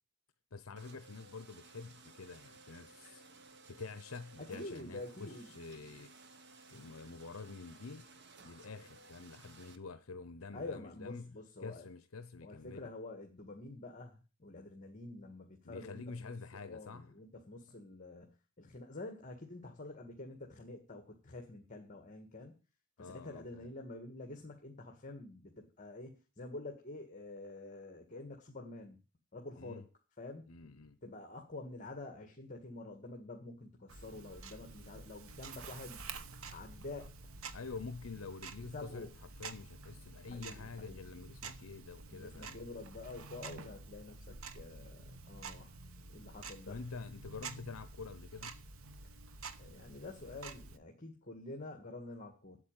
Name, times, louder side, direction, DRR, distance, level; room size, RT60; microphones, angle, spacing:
voice 1, 0.5-3.3 3.7-6.1 6.7-8.1 8.4-12.9 15.6-17.1 23.0-23.7 29.6-29.8 30.5-31.0 37.5-39.1 39.4-42.6 46.7-48.6, left 4 dB, 70° left, 0.7 m, -47 dB
sound 1, 0.8-9.8, right 3 dB, 50° right, 1.2 m, -58 dB
voice 2, 4.5-5.5 10.5-11.9 12.4-16.3 16.6-22.6 23.0-29.0 29.3-29.8 30.2-30.5 31.0-36.1 36.5-37.1 38.7-39.1 40.3-41.1 42.1-45.7 46.1-46.8 49.6-52.6, left 2 dB, 35° left, 1.7 m, -48 dB
Tick-tock, 33.9-50.8, right 4 dB, 70° right, 1.0 m, -49 dB
8.4 x 8.0 x 8.9 m
head